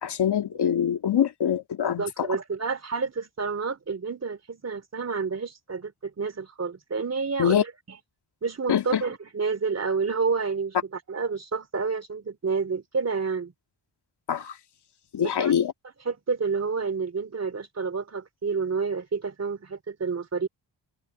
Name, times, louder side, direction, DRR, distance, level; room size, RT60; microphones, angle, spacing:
voice 1, 0.0-2.3 7.4-7.6 8.7-9.0 14.3-14.6 15.1-15.7, left 9 dB, 70° left, 2.8 m, -24 dB
voice 2, 1.8-7.7 8.4-10.8 11.1-13.5 15.2-15.5 16.1-20.5, right 5 dB, 35° right, 3.4 m, -29 dB
cardioid pair, 95°, 42 cm